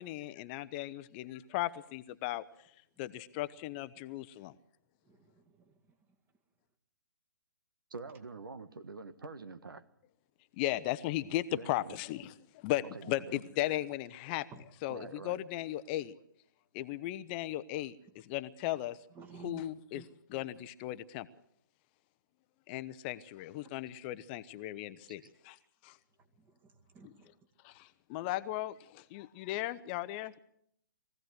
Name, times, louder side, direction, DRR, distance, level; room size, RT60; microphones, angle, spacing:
voice 1, 0.0-2.5 3.0-4.6 10.6-12.3 12.6-14.5 14.8-16.1 16.7-19.0 19.4-20.0 20.3-21.3 22.7-25.6 25.8-26.0 27.0-27.1 27.6-30.4, left 15 dB, 30° left, 14 dB, 0.7 m, -36 dB
voice 2, 5.1-6.0 14.5-14.6 18.6-18.7 19.1-19.7 19.9-20.5 26.3-27.3, right 6 dB, 20° right, 7 dB, 2.1 m, -54 dB
voice 3, 7.9-9.8 11.5-12.0 12.9-13.4 14.9-15.4 25.2-25.3, right 4 dB, 90° right, 13 dB, 1.5 m, -46 dB
22.0 x 16.0 x 8.0 m, 0.71 s
hypercardioid pair, 145°, 11 cm